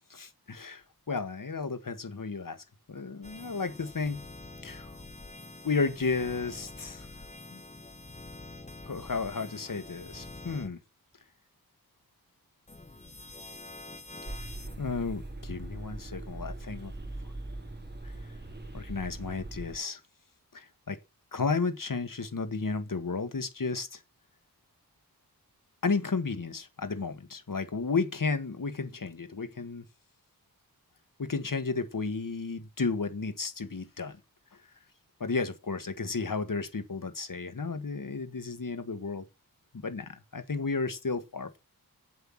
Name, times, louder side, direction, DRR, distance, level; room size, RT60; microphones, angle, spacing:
voice 1, 0.1-4.2 4.6-4.9 5.6-7.1 7.5-7.6 8.8-10.8 14.6-16.9 18.0-18.1 18.7-20.0 20.5-21.0 21.3-24.0 25.8-29.8 31.2-34.2 35.2-39.3 39.8-41.6, left 4 dB, 60° left, 1.8 m, -33 dB
sound 1, 3.2-10.7 12.7-14.8, left 2 dB, 20° left, 1.2 m, -46 dB
sound 2, 14.2-19.8, right 2 dB, 25° right, 3.2 m, -41 dB
8.3 x 8.0 x 7.3 m
wide cardioid pair, 85°, 37 cm